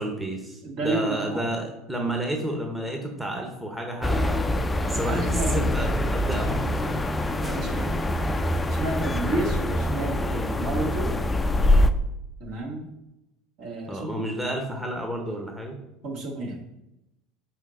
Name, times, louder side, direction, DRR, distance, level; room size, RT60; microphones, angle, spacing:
voice 1, 0.0-4.6 4.9-6.7 7.5-7.8 13.9-15.8, right 1 dB, 10° right, 1 dB, 1.2 m, -31 dB
voice 2, 0.6-1.4 5.0-5.7 7.4-8.1 8.7-11.1 12.4-12.9 13.6-14.2 16.0-16.6, right 2 dB, 50° right, 0 dB, 1.8 m, -31 dB
sound 1, 4.0-11.9, left 1 dB, 15° left, 0.4 m, -24 dB
6.3 x 4.6 x 3.9 m, 0.88 s
figure-of-eight pair, 70°, 0 cm